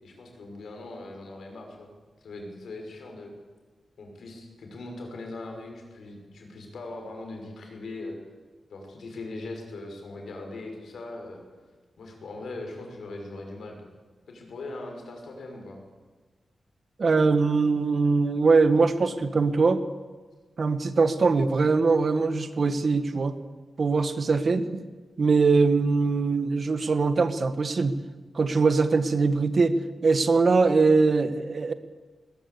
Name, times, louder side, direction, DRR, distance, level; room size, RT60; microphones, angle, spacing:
voice 1, 0.0-1.9 2.2-3.3 4.0-8.1 8.7-11.4 12.0-13.9 14.3-15.8, left 2 dB, 85° left, 2 dB, 6.0 m, -40 dB
voice 2, 17.0-19.8 20.6-23.4 23.8-24.8 25.2-28.0 28.3-29.8 30.0-31.7, right 4 dB, 45° right, 11 dB, 1.3 m, -22 dB
20.5 x 20.0 x 8.5 m, 1.4 s
wide cardioid pair, 170°, 0 cm